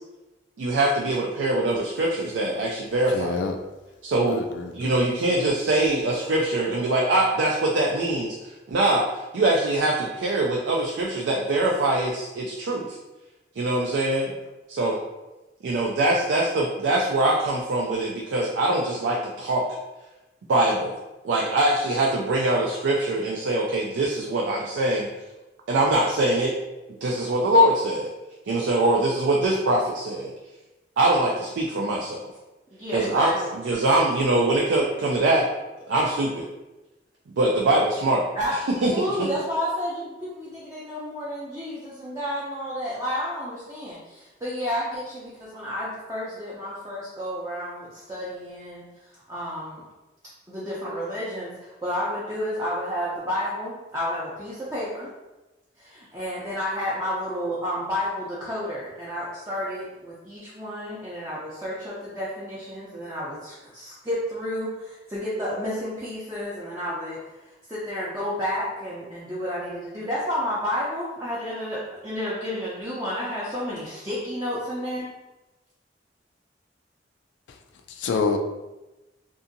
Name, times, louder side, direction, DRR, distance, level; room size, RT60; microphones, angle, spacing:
voice 1, 0.6-3.5 4.0-4.4 4.7-13.0 13.6-14.3 14.7-15.0 15.6-19.6 20.5-20.9 21.2-25.1 25.7-26.5 27.0-28.1 28.5-30.3 31.0-32.2 32.9-35.5 35.9-36.5 37.3-38.3 38.8-38.9 39.2-39.3, right 1 dB, 90° right, -2 dB, 0.4 m, -23 dB
voice 2, 3.1-3.6 4.3-4.9 78.0-78.4, left 4 dB, 80° left, 5 dB, 0.3 m, -27 dB
voice 3, 32.7-33.5 38.3-38.6 38.9-48.9 49.3-49.8 50.5-55.1 55.8-67.2 67.7-75.1, equal, 15° right, -8 dB, 0.5 m, -31 dB
2.7 x 2.4 x 2.5 m, 1.0 s
head